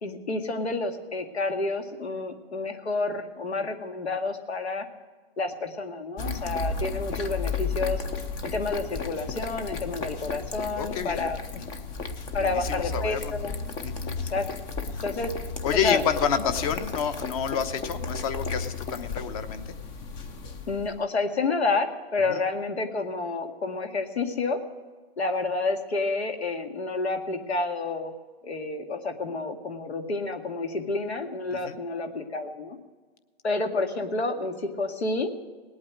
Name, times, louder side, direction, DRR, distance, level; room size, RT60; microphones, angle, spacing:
voice 1, 0.0-4.9 5.4-8.0 8.4-11.4 12.3-13.5 14.2-14.5 15.0-15.3 15.7-16.0 20.7-24.6 25.2-28.1 28.4-32.8 33.4-35.3, left 3 dB, 85° left, 5 dB, 2.1 m, -29 dB
cat drinking water, 6.2-21.0, left 4 dB, 15° left, 0.5 m, -33 dB
voice 2, 10.8-11.3 11.6-11.7 12.4-13.3 13.8-14.2 14.9-15.0 15.6-19.6 22.3-22.4 31.6-31.8, left 7 dB, 35° left, 10 dB, 1.0 m, -29 dB
19.0 x 8.6 x 6.3 m, 1.4 s
hypercardioid pair, 145°, 32 cm